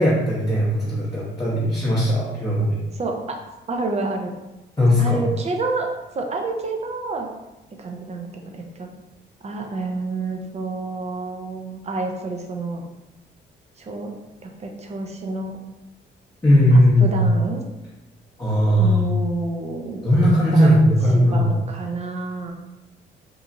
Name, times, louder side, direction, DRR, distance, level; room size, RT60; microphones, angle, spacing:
voice 1, 0.0-2.7 4.8-5.2 16.4-17.2 18.4-19.1 20.0-21.5, equal, 15° left, -8 dB, 0.8 m, -18 dB
voice 2, 2.9-3.4 3.7-4.3 5.0-5.9 6.1-7.3 7.8-8.9 9.4-12.8 13.8-14.1 14.4-15.6 16.7-17.6 18.8-20.0 20.5-20.8 21.1-22.5, right 3 dB, 35° right, 2 dB, 0.5 m, -28 dB
3.0 x 2.3 x 2.6 m, 0.99 s
cardioid pair, 90°, 20 cm